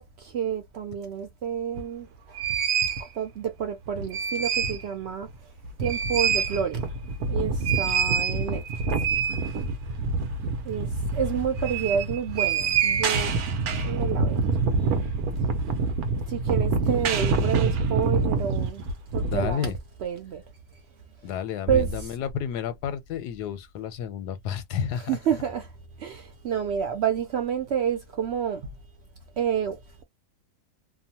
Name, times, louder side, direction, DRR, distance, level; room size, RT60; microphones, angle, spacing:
voice 1, 0.0-2.4 3.0-5.5 5.8-6.9 7.3-8.8 10.6-13.3 13.8-14.5 16.3-18.9 19.1-19.7 20.0-20.4 21.3-21.4 21.7-22.1 24.9-25.7 26.0-28.7 29.4-30.0, right 8 dB, 85° right, 0.5 m, -29 dB
sound 1, 1.7-1.8 2.4-3.0 3.9-4.9 5.2-5.3 5.6-19.5, right 4 dB, 70° right, 1.1 m, -26 dB
voice 2, 19.3-19.8 21.2-25.2, left 8 dB, 90° left, 1.2 m, -31 dB
2.9 x 2.1 x 2.7 m
omnidirectional pair, 1.7 m